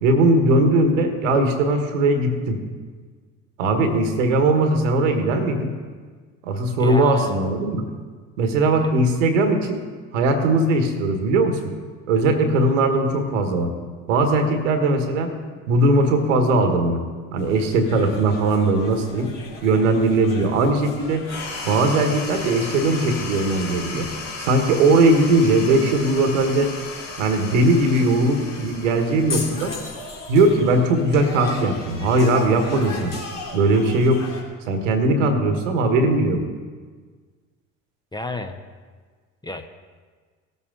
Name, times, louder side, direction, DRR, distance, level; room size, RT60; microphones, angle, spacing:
voice 1, 0.0-2.6 3.6-5.7 6.4-7.8 8.4-9.8 10.1-11.7 12.1-13.7 14.1-15.3 15.7-17.0 17.3-19.3 19.6-21.3 21.6-24.1 24.4-26.7 27.2-29.7 30.3-33.1 33.5-34.2 34.7-36.4, right 2 dB, 75° right, 6 dB, 1.4 m, -19 dB
voice 2, 6.8-7.4 38.1-38.6 39.4-39.7, left 2 dB, 10° left, 7 dB, 0.8 m, -30 dB
sound 1, 17.4-34.4, left 3 dB, 55° left, 2.9 m, -39 dB
sound 2, 21.2-30.1, left 3 dB, 75° left, 2.7 m, -35 dB
18.0 x 8.1 x 3.8 m, 1.5 s
hypercardioid pair, 60°, 38 cm